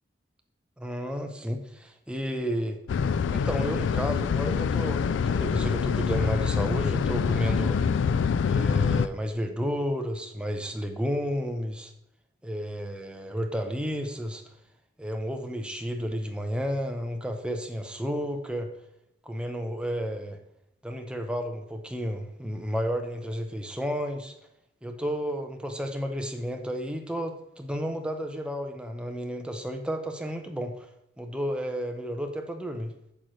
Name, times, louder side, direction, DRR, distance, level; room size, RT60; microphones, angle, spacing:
voice 1, 0.8-2.8 3.3-7.8 8.4-11.9 12.4-14.4 15.0-18.7 19.2-20.4 20.8-24.3 24.8-30.9 31.2-32.9, equal, 5° right, 4 dB, 0.7 m, -32 dB
sound 1, 2.9-9.1, left 6 dB, 75° left, 0.3 m, -25 dB
8.4 x 6.4 x 3.1 m, 0.81 s
head